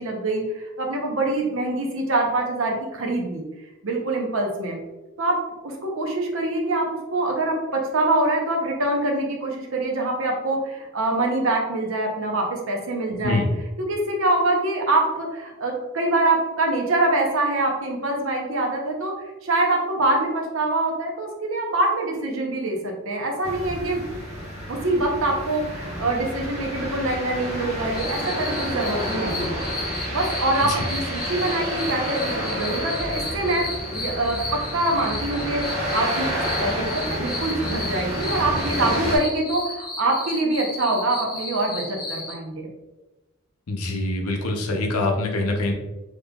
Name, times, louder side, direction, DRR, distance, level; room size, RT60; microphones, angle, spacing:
voice 1, 0.0-3.4 3.8-4.8 5.2-13.5 13.8-19.2 19.4-24.0 24.7-29.6 30.1-33.7 33.9-42.7, right 2 dB, 65° right, 1 dB, 0.7 m, -24 dB
sound 1, 23.4-39.2, equal, 30° right, 1.1 m, -30 dB
sound 2, 27.9-42.3, left 2 dB, 20° left, 0.5 m, -34 dB
voice 2, 43.7-45.7, left 2 dB, 90° left, 2 dB, 0.6 m, -24 dB
3.6 x 3.1 x 2.3 m, 1.1 s
head